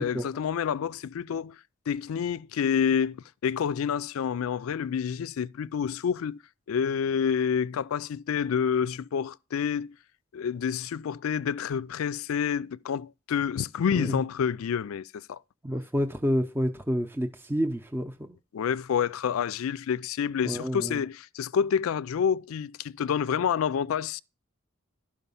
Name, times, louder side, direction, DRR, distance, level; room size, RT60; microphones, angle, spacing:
voice 1, 0.0-1.6 1.9-6.4 6.7-10.0 10.3-15.4 18.5-24.2, left 7 dB, 85° left, 0.4 m, -28 dB
voice 2, 15.6-18.3 20.4-21.0, equal, 10° right, 0.6 m, -29 dB
11.5 x 4.9 x 5.4 m
head